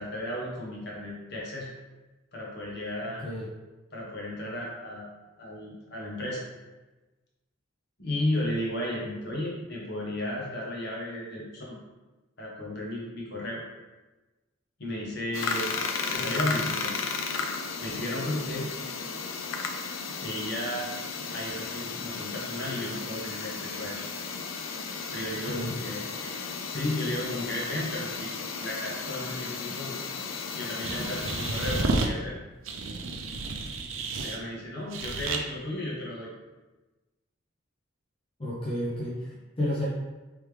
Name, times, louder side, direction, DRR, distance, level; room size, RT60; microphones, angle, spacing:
voice 1, 0.0-1.7 2.3-3.2 3.9-5.1 5.4-6.4 8.0-11.8 12.4-13.6 14.8-17.0 17.8-18.7 20.1-20.8 21.3-24.0 25.1-29.9 30.5-32.3 34.2-36.3, left 1 dB, 55° left, -4 dB, 0.9 m, -34 dB
voice 2, 3.0-3.5 25.4-25.8 38.4-39.9, left 1 dB, 25° left, -7 dB, 0.6 m, -32 dB
sound 1, 15.3-31.8, left 5 dB, 85° left, 0.4 m, -34 dB
sound 2, 30.8-32.1 32.6-34.4 34.9-35.4, right 3 dB, 85° right, 0.5 m, -31 dB
3.4 x 3.1 x 3.3 m, 1.2 s
head